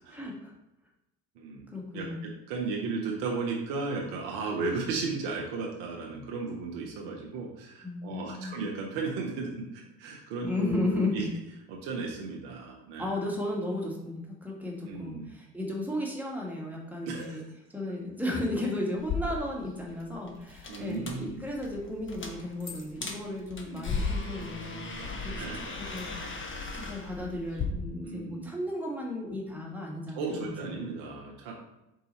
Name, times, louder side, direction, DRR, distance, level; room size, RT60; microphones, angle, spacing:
voice 1, 0.1-0.5 1.7-2.3 6.1-6.2 7.8-8.6 10.4-11.3 13.0-17.4 17.7-24.8 25.2-25.4 25.7-30.8, left 2 dB, 5° right, -3 dB, 1.5 m, -34 dB
voice 2, 1.4-1.7 1.9-11.2 11.7-13.1 14.8-15.3 17.0-17.4 20.7-21.7 23.7-23.9 25.4-25.7 28.0-28.6 30.1-31.6, right 4 dB, 65° right, -1 dB, 1.0 m, -35 dB
sound 1, 19.0-27.7, left 4 dB, 25° left, 0.9 m, -37 dB
4.7 x 2.7 x 4.2 m, 0.91 s
hypercardioid pair, 60°, 46 cm